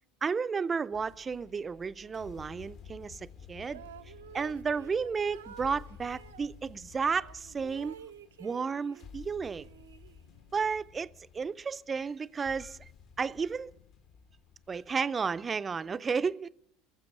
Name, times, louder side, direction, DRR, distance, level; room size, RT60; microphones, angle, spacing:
voice 1, 0.2-3.8 4.3-8.0 8.4-9.6 10.5-12.9 13.2-13.7 14.7-16.5, right 5 dB, 25° right, 0.5 m, -32 dB
sound 1, 0.9-15.2, left 7 dB, 50° left, 1.2 m, -53 dB
sound 2, 3.6-6.5 7.2-9.1 9.5-10.6, right 9 dB, 85° right, 0.6 m, -51 dB
18.0 x 7.5 x 9.4 m
hypercardioid pair, 80°, 0 cm